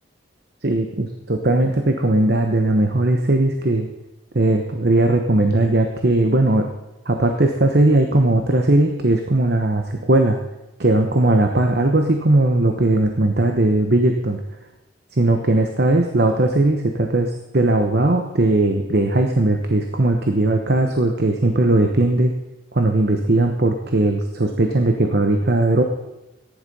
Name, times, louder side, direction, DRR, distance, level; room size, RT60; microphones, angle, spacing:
voice 1, 0.6-3.9 4.3-6.7 7.1-10.4 10.8-14.4 15.2-22.3 22.7-25.8, right 2 dB, 50° right, 4 dB, 1.0 m, -18 dB
15.0 x 10.5 x 5.5 m, 0.98 s
head